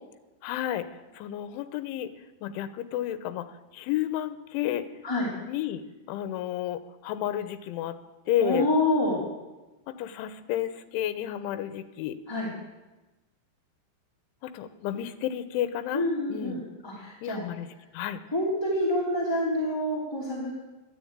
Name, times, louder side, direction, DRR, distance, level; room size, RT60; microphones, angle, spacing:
voice 1, 0.4-0.9 1.1-2.1 2.4-3.5 3.7-4.8 5.4-7.9 8.3-8.7 9.9-12.2 14.4-16.0 16.3-16.6 17.2-17.7 17.9-18.2, left 12 dB, 85° left, 11 dB, 3.3 m, -31 dB
voice 2, 8.4-9.2 12.3-12.5 15.9-17.5 18.3-20.5, left 1 dB, 5° left, -6 dB, 2.1 m, -27 dB
13.0 x 11.5 x 8.8 m, 1.1 s
omnidirectional pair, 5.5 m